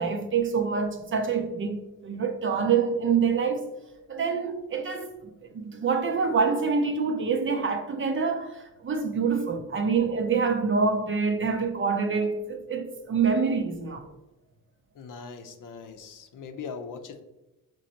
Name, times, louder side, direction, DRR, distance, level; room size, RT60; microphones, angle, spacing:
voice 1, 0.0-3.7 4.1-5.1 5.5-14.1, right 5 dB, 35° right, 0.6 m, -26 dB
voice 2, 14.9-17.2, left 5 dB, 60° left, 0.7 m, -40 dB
5.0 x 3.1 x 2.9 m
cardioid pair, 85°, 37 cm